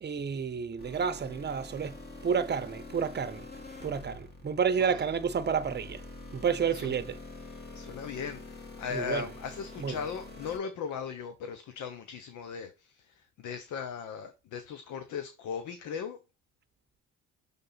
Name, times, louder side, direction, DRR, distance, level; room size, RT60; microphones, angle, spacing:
voice 1, 0.0-3.5 3.8-6.0 6.3-7.2 8.9-9.3 9.8-10.0, right 6 dB, 35° right, 0.8 m, -30 dB
sound 1, 0.8-10.6, left 2 dB, 35° left, 2.4 m, -46 dB
voice 2, 7.7-16.2, left 6 dB, 80° left, 0.9 m, -38 dB
6.7 x 3.6 x 4.0 m
cardioid pair, 90°, 30 cm